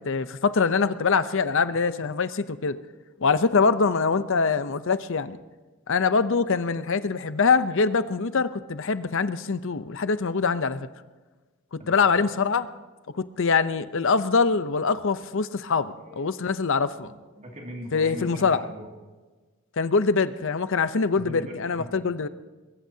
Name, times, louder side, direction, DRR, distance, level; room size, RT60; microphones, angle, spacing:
voice 1, 0.0-2.8 3.2-5.4 5.9-10.9 11.7-12.7 13.1-17.1 17.9-18.6 19.8-22.3, left 5 dB, 60° left, 12 dB, 0.7 m, -24 dB
voice 2, 15.7-16.4 17.0-18.9 21.2-21.9, equal, 30° right, 0 dB, 2.4 m, -41 dB
22.5 x 21.0 x 2.8 m, 1.3 s
head